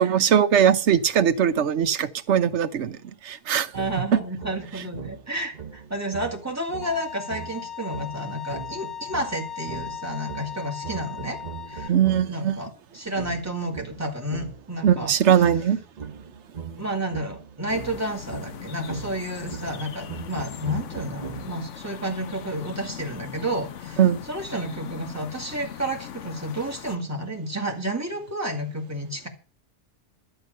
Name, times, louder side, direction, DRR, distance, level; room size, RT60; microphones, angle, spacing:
voice 1, 0.0-3.0 3.2-3.7 4.1-4.2 11.9-12.6 14.8-15.8 24.0-24.2, right 9 dB, 75° right, 1.1 m, -20 dB
voice 2, 3.7-11.4 11.7-11.9 12.3-15.1 16.8-24.0 24.3-29.3, right 1 dB, 15° right, 2.4 m, -31 dB
sound 1, 3.7-12.5 13.1-21.8, right 6 dB, 40° right, 1.0 m, -40 dB
Bowed string instrument, 6.8-11.9, left 8 dB, 30° left, 0.4 m, -37 dB
sound 2, 17.7-27.0, left 9 dB, 90° left, 1.1 m, -40 dB
12.5 x 8.0 x 6.7 m
omnidirectional pair, 1.2 m